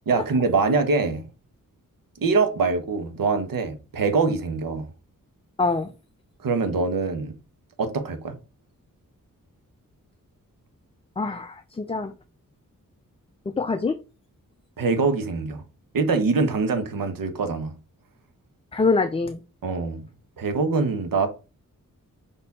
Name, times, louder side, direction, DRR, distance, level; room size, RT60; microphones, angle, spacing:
voice 1, 0.1-1.2 2.2-4.9 6.4-7.3 7.8-8.3 14.8-15.6 15.9-17.8 19.6-20.0 20.4-21.3, right 4 dB, 90° right, 1.1 m, -24 dB
voice 2, 5.6-5.9 11.2-12.1 13.6-14.0 18.7-19.4, left 3 dB, 20° left, 0.4 m, -24 dB
5.4 x 4.3 x 4.2 m
wide cardioid pair, 155°, 33 cm